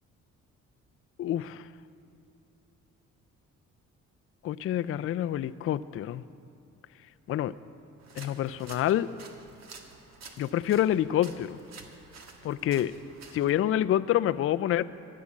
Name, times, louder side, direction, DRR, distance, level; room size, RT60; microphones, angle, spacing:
voice 1, 1.2-1.6 4.4-6.2 7.3-7.5 8.2-9.1 10.4-11.6 12.4-12.9 13.3-14.8, left 12 dB, 50° left, 13 dB, 0.4 m, -27 dB
sound 1, 8.0-13.5, right 4 dB, 60° right, 1.4 m, -50 dB
13.5 x 7.5 x 9.5 m, 2.6 s
cardioid pair, 90°, 30 cm